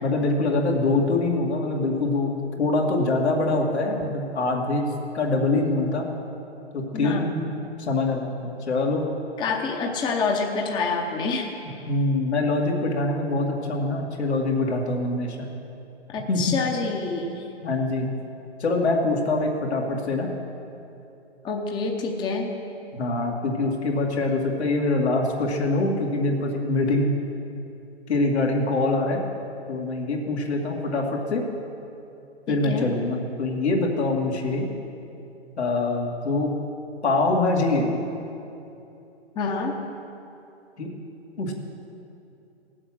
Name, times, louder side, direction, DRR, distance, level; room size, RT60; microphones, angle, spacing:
voice 1, 0.0-6.1 6.7-7.4 7.8-8.3 8.7-9.1 11.9-15.5 16.3-16.6 17.6-18.1 18.6-20.3 22.9-27.1 28.1-29.2 29.7-31.4 32.5-34.7 35.6-36.5 37.0-37.9 40.8-40.9 41.4-41.5, left 2 dB, 80° left, -1 dB, 2.4 m, -24 dB
voice 2, 6.9-7.3 9.4-11.5 16.1-17.4 21.4-22.5 32.5-32.9 39.4-39.7, left 4 dB, 15° left, 2 dB, 0.8 m, -27 dB
17.0 x 7.7 x 6.1 m, 2.8 s
hypercardioid pair, 130°, 33 cm